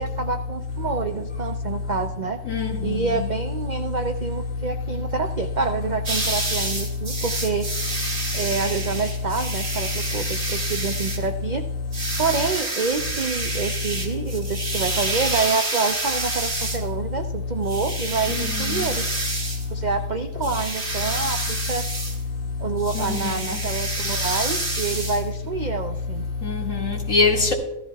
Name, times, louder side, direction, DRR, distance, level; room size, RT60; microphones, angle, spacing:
voice 1, 0.0-2.4 2.8-7.7 8.3-11.6 12.2-19.1 19.7-21.9 22.6-26.3, right 4 dB, 55° right, 0.5 m, -27 dB
sound 1, 6.1-11.3 11.9-16.9 17.7-19.7 20.4-22.2 22.8-25.2, right 2 dB, 35° right, 2.1 m, -28 dB
voice 2, 26.4-27.5, left 4 dB, 60° left, 2.5 m, -22 dB
15.0 x 14.0 x 2.3 m
omnidirectional pair, 1.5 m